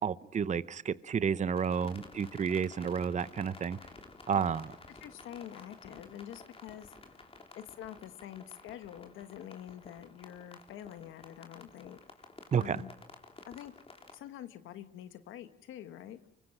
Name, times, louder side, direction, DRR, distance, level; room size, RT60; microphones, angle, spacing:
voice 1, 0.0-3.8 4.3-4.7 12.5-12.8, right 7 dB, 35° right, 16 dB, 0.8 m, -31 dB
sound 1, 1.6-14.1, left 3 dB, 30° left, 3.5 m, -53 dB
voice 2, 4.9-7.0 7.5-12.0 12.6-12.9 13.4-13.7 14.1-16.3, left 11 dB, 85° left, 11 dB, 1.3 m, -46 dB
25.0 x 24.0 x 6.0 m, 0.91 s
cardioid pair, 90°, 20 cm